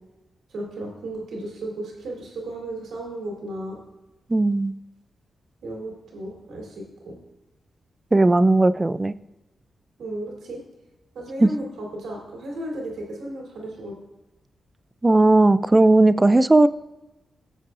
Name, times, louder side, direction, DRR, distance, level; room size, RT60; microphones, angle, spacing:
voice 1, 0.5-3.8 5.6-7.2 10.0-10.6 11.1-14.0, right 1 dB, 90° right, -2 dB, 3.1 m, -34 dB
voice 2, 4.3-4.7 8.1-9.1 11.4-11.5 15.0-16.7, right 2 dB, 20° right, 15 dB, 0.4 m, -16 dB
18.0 x 7.5 x 2.5 m, 1.0 s
cardioid pair, 80°, 0 cm